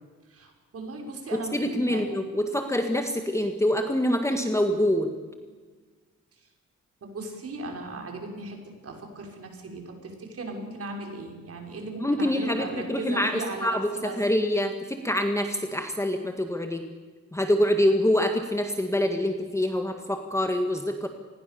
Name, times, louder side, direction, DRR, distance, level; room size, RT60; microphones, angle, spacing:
voice 1, 0.3-2.0 6.4-6.5 7.0-8.6 8.8-14.2, right 2 dB, 45° right, 2 dB, 6.0 m, -37 dB
voice 2, 1.3-5.1 12.0-16.8 17.3-21.1, left 1 dB, 10° left, 5 dB, 1.8 m, -25 dB
28.0 x 20.5 x 7.0 m, 1.4 s
cardioid pair, 150°, 33 cm